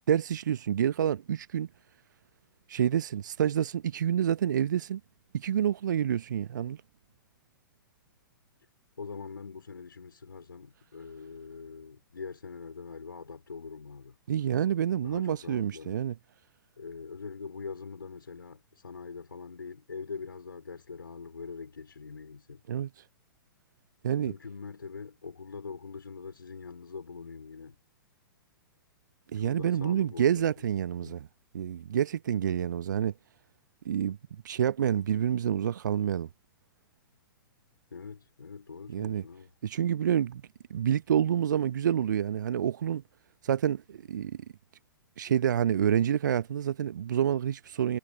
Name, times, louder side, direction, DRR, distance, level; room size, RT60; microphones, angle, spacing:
voice 1, 0.1-1.7 2.7-5.0 5.3-6.8 14.3-16.2 22.7-23.0 24.0-24.3 29.3-31.3 31.5-33.1 33.8-34.2 34.4-36.3 38.9-39.2 39.6-40.4 40.7-43.0 43.4-44.4 45.2-48.0, right 9 dB, 55° right, 0.8 m, -28 dB
voice 2, 9.0-14.2 15.0-16.0 16.8-22.6 24.2-27.8 29.3-30.5 31.0-31.2 37.9-39.5, left 5 dB, 70° left, 3.4 m, -43 dB
figure-of-eight pair, 110°, 12 cm